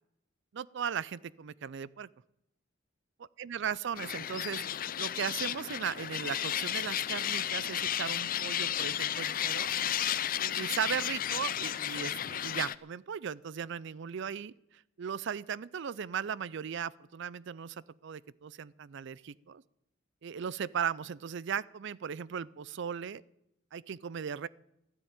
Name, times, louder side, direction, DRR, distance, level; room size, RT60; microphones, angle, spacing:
voice 1, 0.5-2.1 3.4-9.7 10.4-19.6 20.2-23.2 23.7-24.5, right 7 dB, 65° right, 21 dB, 0.4 m, -37 dB
sound 1, 4.0-12.8, left 10 dB, 45° left, 0.5 m, -33 dB
13.0 x 10.0 x 8.9 m, 0.83 s
head